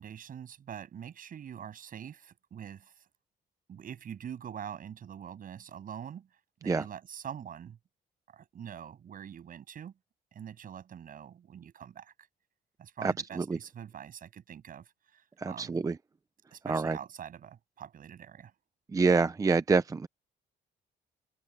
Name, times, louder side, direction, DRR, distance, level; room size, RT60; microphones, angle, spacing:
voice 1, 0.0-3.0 3.7-6.3 6.6-7.8 8.3-9.9 10.3-12.1 12.8-15.8 16.5-18.5, right 8 dB, 55° right, 7.8 m, -44 dB
voice 2, 13.0-13.6 15.4-16.0 16.7-17.0 18.9-20.1, right 4 dB, 20° right, 0.5 m, -27 dB
open air
cardioid pair, 115°, 17 cm